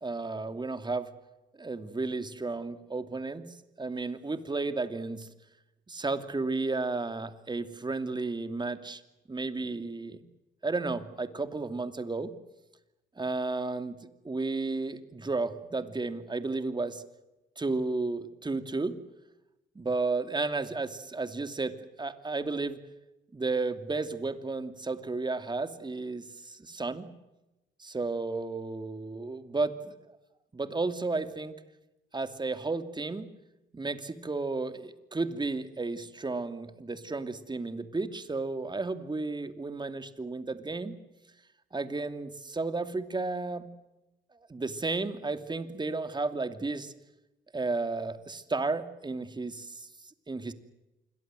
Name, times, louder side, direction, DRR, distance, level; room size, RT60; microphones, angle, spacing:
voice 1, 0.0-1.1 1.6-3.5 3.8-5.3 5.9-9.0 9.3-10.2 10.6-12.3 13.2-14.0 14.2-17.0 17.6-19.0 19.7-22.8 23.3-27.1 27.8-30.0 30.5-31.6 32.1-33.3 33.7-40.9 41.7-43.7 44.5-46.9 47.5-49.9 50.3-50.5, right 3 dB, 20° right, 10 dB, 2.8 m, -33 dB
27.5 x 22.5 x 7.8 m, 0.96 s
cardioid pair, 90°, 20 cm